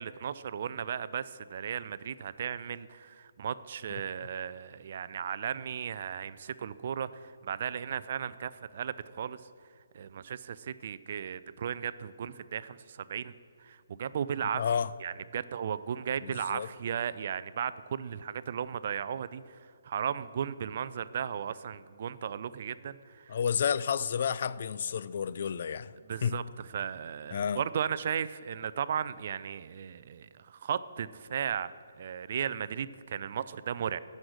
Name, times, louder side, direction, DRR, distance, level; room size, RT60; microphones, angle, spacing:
voice 1, 0.0-9.4 9.9-14.6 15.0-23.3 26.0-31.7 32.0-34.0, right 8 dB, 50° right, 0.4 m, -35 dB
voice 2, 14.6-14.9 16.2-16.7 23.3-25.9 26.2-26.4 27.3-27.6, left 7 dB, 55° left, 0.3 m, -30 dB
9.3 x 6.4 x 6.5 m
figure-of-eight pair, 140°, 0 cm